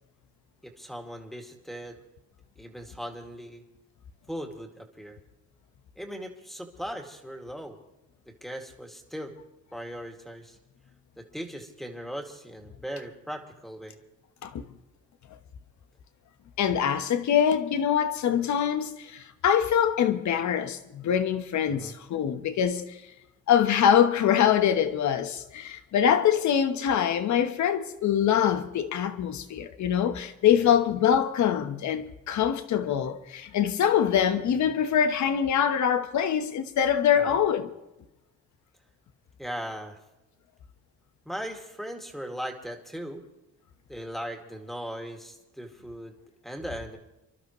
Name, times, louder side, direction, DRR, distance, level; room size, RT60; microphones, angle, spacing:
voice 1, 0.6-2.0 2.6-3.6 4.3-5.2 6.0-7.8 8.2-9.3 9.7-10.6 11.2-14.0 21.7-22.0 30.5-30.7 37.2-37.4 39.4-40.0 41.3-43.2 43.9-46.1 46.4-47.0, equal, ahead, 2.4 m, -38 dB
voice 2, 16.6-22.9 23.5-37.7, left 9 dB, 70° left, 1.3 m, -24 dB
29.0 x 12.0 x 3.2 m
cardioid pair, 90°, 30 cm